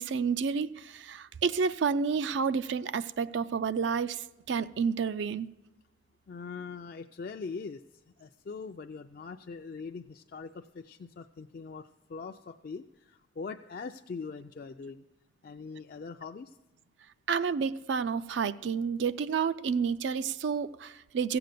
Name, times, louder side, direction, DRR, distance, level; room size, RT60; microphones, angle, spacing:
voice 1, 0.0-5.5 17.3-21.4, right 6 dB, 85° right, 0.4 m, -30 dB
voice 2, 6.3-15.0 15.4-16.6, left 4 dB, 55° left, 0.3 m, -42 dB
15.5 x 7.8 x 6.7 m
head